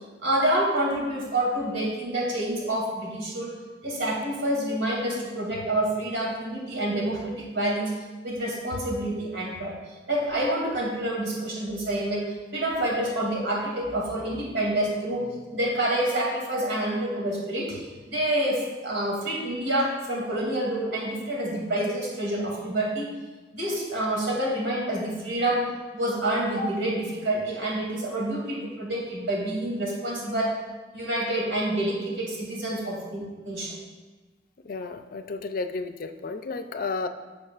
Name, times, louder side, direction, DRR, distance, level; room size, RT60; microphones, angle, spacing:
voice 1, 0.2-3.5 3.8-7.9 8.2-9.7 10.1-15.2 15.5-23.1 23.5-25.6 25.9-30.5 30.9-33.7, right 1 dB, 85° right, -3 dB, 2.6 m, -27 dB
voice 2, 34.6-37.1, left 3 dB, 50° left, 8 dB, 0.5 m, -32 dB
15.0 x 5.0 x 2.5 m, 1.3 s
head